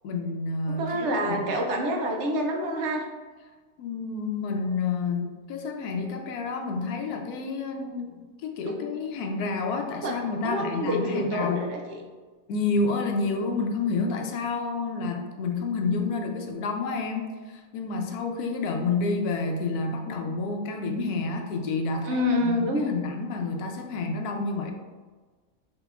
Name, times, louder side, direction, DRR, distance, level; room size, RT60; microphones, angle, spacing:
voice 1, 0.0-1.5 3.8-11.7 12.5-24.7, left 4 dB, 85° left, 4 dB, 1.1 m, -29 dB
voice 2, 0.7-3.0 8.6-8.7 10.0-10.1 10.4-12.0 22.1-22.9, equal, 60° right, 1 dB, 0.8 m, -27 dB
5.5 x 2.9 x 2.4 m, 1.3 s
omnidirectional pair, 1.6 m